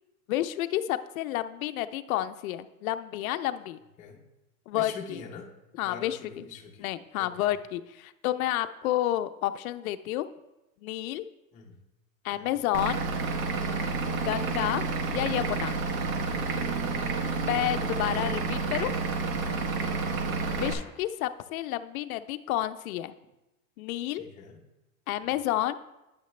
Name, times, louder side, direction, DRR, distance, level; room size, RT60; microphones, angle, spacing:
voice 1, 0.3-3.8 4.7-5.2 5.8-6.4 6.8-10.3 10.8-11.3 12.2-13.0 13.9-14.0 14.2-14.8 15.1-15.7 17.4-18.9 20.5-23.1 23.8-24.2 25.1-25.8, left 14 dB, 90° left, 11 dB, 0.5 m, -30 dB
voice 2, 4.7-5.5 5.8-6.9 7.2-7.5 11.5-11.8 12.3-12.6 15.9-16.2 17.5-18.4 19.8-20.1 24.1-24.6, left 5 dB, 20° left, 0 dB, 0.6 m, -44 dB
Vehicle / Engine, 12.7-20.7, right 4 dB, 85° right, 1.1 m, -30 dB
9.4 x 6.6 x 3.1 m, 0.96 s
supercardioid pair, 165°, 41 cm